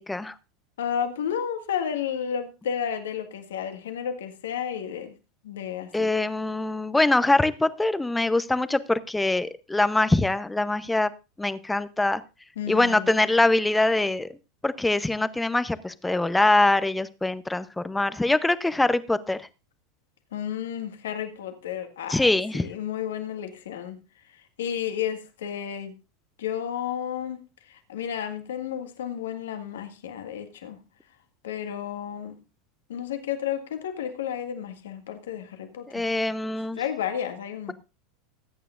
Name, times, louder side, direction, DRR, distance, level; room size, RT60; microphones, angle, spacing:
voice 1, 0.8-5.1 5.4-6.1 12.5-13.2 20.3-24.0 24.3-25.9 26.4-30.8 31.4-32.4 32.9-36.1 36.7-37.7, left 9 dB, 75° left, 1.8 m, -32 dB
voice 2, 5.9-11.1 11.4-12.2 12.7-14.3 14.6-19.4 22.1-22.7 35.9-36.8, left 2 dB, 10° left, 0.8 m, -23 dB
20.0 x 8.9 x 2.6 m
hypercardioid pair, 90°, 0 cm